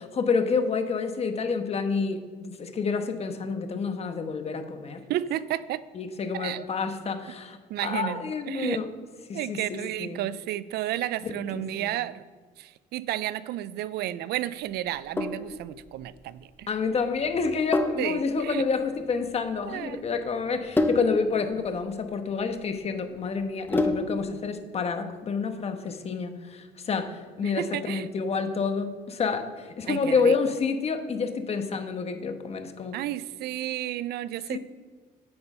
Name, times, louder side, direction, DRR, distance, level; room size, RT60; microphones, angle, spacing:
voice 1, 0.0-5.0 5.9-8.9 9.3-10.2 11.2-11.9 16.7-33.0 34.5-34.6, left 5 dB, 40° left, 7 dB, 1.1 m, -29 dB
voice 2, 5.1-5.8 6.3-6.6 7.7-8.8 9.3-12.2 12.6-16.7 18.0-18.6 19.7-20.0 27.4-28.1 29.9-30.4 32.9-34.6, right 13 dB, 70° right, 17 dB, 0.4 m, -32 dB
Sink (filling or washing), 14.9-24.3, left 2 dB, 10° left, 0.8 m, -31 dB
8.7 x 8.6 x 5.5 m, 1.5 s
cardioid pair, 110°, 17 cm